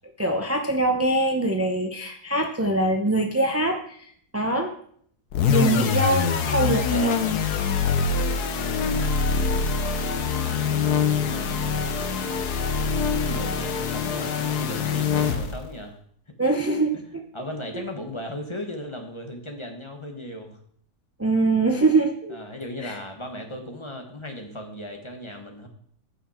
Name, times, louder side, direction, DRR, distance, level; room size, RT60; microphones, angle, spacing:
voice 1, 0.2-4.0 4.3-4.7 5.5-7.2 16.4-17.0 21.2-22.4 22.8-23.0, right 2 dB, 20° right, 4 dB, 0.4 m, -23 dB
sound 1, 5.3-15.7, left 5 dB, 85° left, 1.5 m, -24 dB
voice 2, 8.5-9.4 10.4-12.1 12.8-16.0 16.9-20.6 22.3-25.7, left 1 dB, 20° left, 3 dB, 1.4 m, -37 dB
14.0 x 5.7 x 4.4 m, 0.63 s
omnidirectional pair, 1.6 m